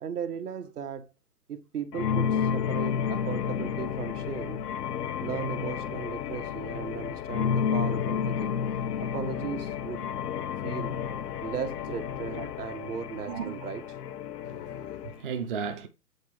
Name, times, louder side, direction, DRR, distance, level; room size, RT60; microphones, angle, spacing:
voice 1, 0.0-1.1 1.5-4.6 5.2-8.5 9.0-10.1 10.6-11.0 11.4-13.8, right 7 dB, 65° right, 1.1 m, -37 dB
sound 1, 1.9-15.2, left 7 dB, 70° left, 0.6 m, -31 dB
voice 2, 14.4-15.9, right 7 dB, 35° right, 0.5 m, -35 dB
8.1 x 3.9 x 3.1 m
hypercardioid pair, 135°, 49 cm